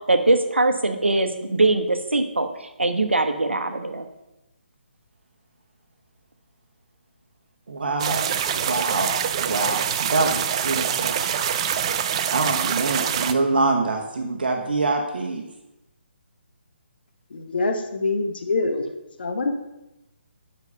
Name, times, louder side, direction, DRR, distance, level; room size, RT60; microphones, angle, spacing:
voice 1, 0.1-4.0, right 2 dB, 75° right, 7 dB, 1.0 m, -22 dB
voice 2, 7.7-8.3 8.5-11.3 12.3-15.5, right 3 dB, 55° right, 3 dB, 1.2 m, -25 dB
sound 1, 8.0-13.3, right 8 dB, 30° right, 0.4 m, -25 dB
voice 3, 17.3-18.8 19.2-19.5, left 3 dB, 55° left, 6 dB, 1.0 m, -25 dB
8.2 x 5.6 x 5.6 m, 0.96 s
figure-of-eight pair, 140°, 6 cm